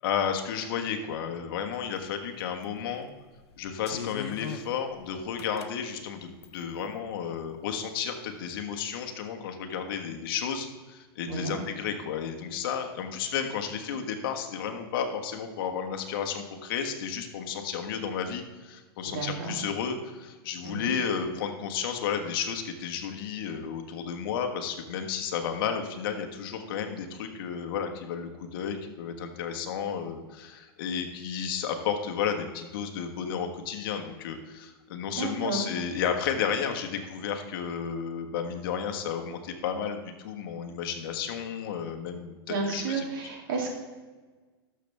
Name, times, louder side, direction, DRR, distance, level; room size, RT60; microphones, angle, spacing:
voice 1, 0.0-3.1 3.6-43.0, left 7 dB, 55° left, 5 dB, 1.4 m, -32 dB
sound 1, 2.0-2.1 2.6-2.9 3.4-5.7 6.4-6.9, left 9 dB, 80° left, 0.7 m, -40 dB
voice 2, 11.3-11.6 19.0-19.5 20.6-20.9 35.1-35.6 42.5-43.7, right 4 dB, 60° right, 0 dB, 2.8 m, -32 dB
11.5 x 6.9 x 3.5 m, 1.3 s
hypercardioid pair, 140°, 13 cm